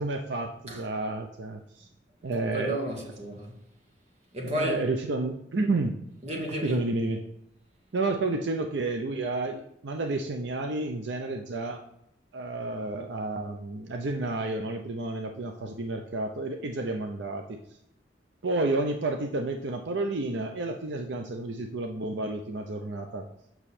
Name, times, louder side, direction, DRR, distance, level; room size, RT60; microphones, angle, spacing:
voice 1, 0.0-1.9 2.2-2.8 4.4-5.9 6.6-7.2 7.9-11.8 12.3-17.6 18.4-23.3, right 2 dB, 75° right, 0.6 m, -31 dB
voice 2, 2.5-3.5 4.3-4.8 6.2-6.8, right 1 dB, 35° right, 1.7 m, -31 dB
6.9 x 6.2 x 4.2 m
head